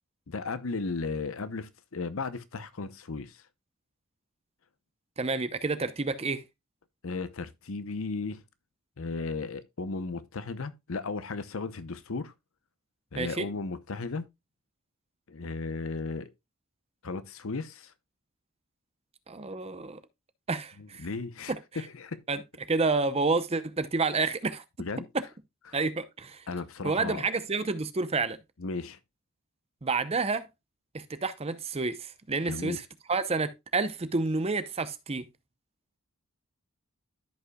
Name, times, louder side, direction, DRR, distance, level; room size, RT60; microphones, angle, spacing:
voice 1, 0.3-3.4 7.0-8.4 9.0-12.3 13.1-14.2 15.3-16.3 17.0-17.9 20.8-22.2 24.8-25.1 25.7-25.8 26.5-27.2 28.6-29.0 32.5-32.8, left 3 dB, 65° left, 0.8 m, -35 dB
voice 2, 5.2-6.4 13.2-13.5 19.3-20.0 20.5-21.1 22.3-22.4 22.7-24.6 25.7-26.4 26.8-28.4 29.8-30.5 30.9-32.8 33.1-35.2, right 3 dB, 30° right, 0.7 m, -29 dB
13.5 x 5.5 x 2.2 m
head